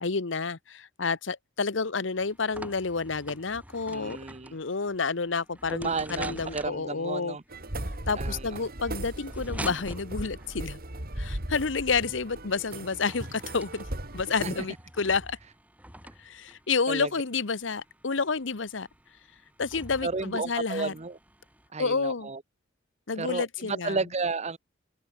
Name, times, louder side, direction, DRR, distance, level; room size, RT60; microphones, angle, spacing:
voice 1, 0.0-4.2 4.5-7.4 8.1-10.8 11.2-13.8 14.1-15.4 16.2-18.9 19.6-20.9 21.8-22.3 23.1-24.0, left 4 dB, 75° left, 1.0 m, -30 dB
sound 1, 2.2-21.7, right 1 dB, 10° right, 6.7 m, -47 dB
voice 2, 3.9-4.5 5.7-7.4 8.1-8.6 14.4-14.5 16.9-17.1 20.0-21.2 21.7-22.4 23.2-24.6, right 4 dB, 35° right, 1.0 m, -32 dB
sound 2, 7.5-14.6, right 1 dB, 50° right, 3.9 m, -37 dB
open air
head